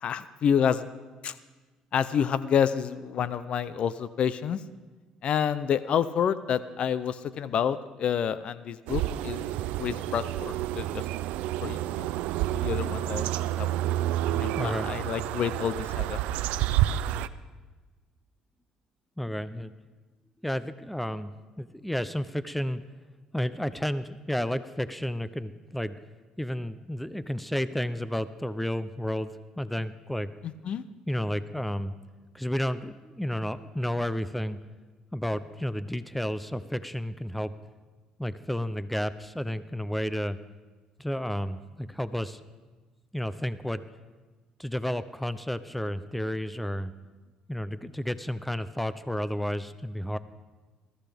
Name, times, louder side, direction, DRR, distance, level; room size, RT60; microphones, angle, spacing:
voice 1, 0.0-0.9 1.2-1.3 1.9-4.6 5.2-9.4 9.8-11.0 11.6-12.1 12.5-13.7 14.3-16.2 30.4-30.8, left 8 dB, 55° left, 15 dB, 0.5 m, -28 dB
sound 1, 8.9-17.3, right 13 dB, 85° right, 0.4 m, -29 dB
voice 2, 14.6-14.9 19.2-19.7 20.4-21.3 21.6-22.8 23.3-25.9 26.4-29.3 29.6-30.3 31.1-31.9 32.3-34.6 35.1-37.5 38.2-40.4 41.0-42.4 43.1-43.8 44.6-46.9 47.5-50.2, equal, 5° left, 13 dB, 0.6 m, -31 dB
20.5 x 14.0 x 3.5 m, 1.3 s
cardioid pair, 105°, 2 cm